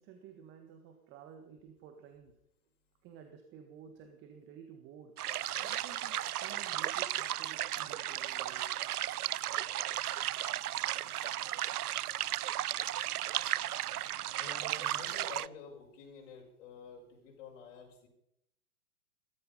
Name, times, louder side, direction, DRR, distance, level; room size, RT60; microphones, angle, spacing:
voice 1, 0.0-2.3 3.0-5.2 5.6-8.8, right 7 dB, 25° right, 6 dB, 1.7 m, -53 dB
sound 1, 5.2-15.5, right 12 dB, 80° right, 0.6 m, -35 dB
voice 2, 14.4-18.1, left 5 dB, 40° left, -1 dB, 6.4 m, -49 dB
17.0 x 14.0 x 5.5 m, 0.77 s
hypercardioid pair, 130°, 45 cm